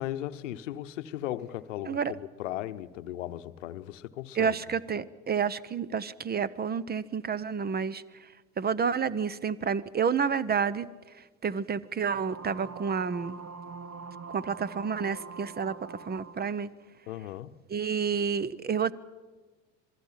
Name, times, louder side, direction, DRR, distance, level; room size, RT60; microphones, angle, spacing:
voice 1, 0.0-4.6 17.1-17.5, left 13 dB, 80° left, 0.9 m, -37 dB
voice 2, 4.3-8.0 8.6-10.9 11.4-13.4 14.3-15.7 16.1-16.7 17.7-18.9, right 6 dB, 25° right, 0.9 m, -29 dB
sound 1, 12.1-16.6, right 4 dB, 45° right, 1.5 m, -44 dB
27.0 x 21.0 x 5.7 m
hypercardioid pair, 65°, 37 cm